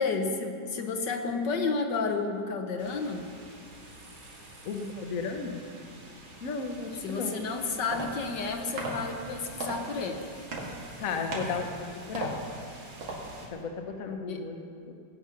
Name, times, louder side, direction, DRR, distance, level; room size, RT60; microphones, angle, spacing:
voice 1, 0.0-3.3 7.0-10.5 14.3-14.4, left 4 dB, 65° left, 4 dB, 1.5 m, -31 dB
sound 1, 2.8-13.5, right 1 dB, 45° right, 2.4 m, -49 dB
voice 2, 4.6-5.7 6.4-7.4 11.0-12.3 13.5-14.6 14.9-15.0, left 4 dB, 50° left, 4 dB, 1.2 m, -34 dB
sound 2, 7.5-13.6, right 2 dB, 90° right, 2.9 m, -39 dB
18.5 x 9.0 x 5.7 m, 2.4 s
omnidirectional pair, 2.1 m